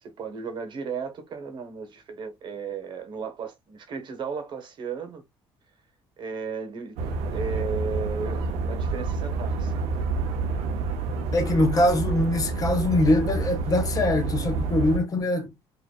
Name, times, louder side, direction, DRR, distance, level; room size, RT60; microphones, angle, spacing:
voice 1, 0.0-5.2 6.2-7.0 7.3-9.7, right 5 dB, 50° right, 1.2 m, -35 dB
sound 1, 7.0-15.0, right 4 dB, 85° right, 1.0 m, -28 dB
voice 2, 11.3-15.5, left 1 dB, 35° left, 1.1 m, -23 dB
5.4 x 2.8 x 2.2 m
cardioid pair, 130°, 10 cm